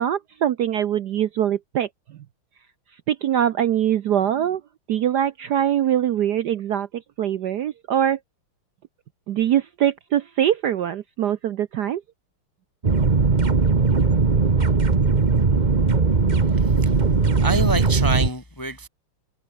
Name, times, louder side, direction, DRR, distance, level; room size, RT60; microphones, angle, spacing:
voice 1, 0.0-1.9 3.1-4.6 4.9-6.9 7.2-8.2 9.3-12.0, right 10 dB, 65° right, 1.1 m, -22 dB
sound 1, 12.8-18.3, right 4 dB, 25° right, 1.1 m, -19 dB
voice 2, 16.5-16.9 17.4-18.9, right 2 dB, 15° left, 1.0 m, -27 dB
omnidirectional pair, 2.4 m